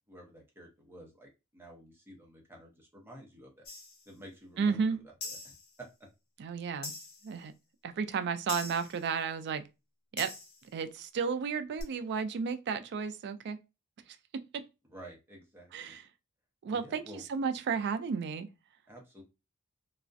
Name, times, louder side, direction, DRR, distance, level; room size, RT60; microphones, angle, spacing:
voice 1, 0.1-3.7 4.1-5.0 5.2-6.1 14.9-16.0 16.7-17.2 18.9-19.2, right 1 dB, 10° right, 0.7 m, -51 dB
sound 1, 3.7-4.0 5.2-5.7 6.8-7.3 8.5-9.0 10.2-10.7 11.8-11.9, left 3 dB, 65° left, 0.9 m, -42 dB
voice 2, 4.6-5.0 6.4-6.9 7.2-7.5 7.8-9.6 10.1-10.3 10.7-13.6 14.3-14.6 15.7-16.0 16.6-17.0 17.3-18.5, right 5 dB, 50° right, 0.3 m, -33 dB
2.3 x 2.1 x 2.5 m
head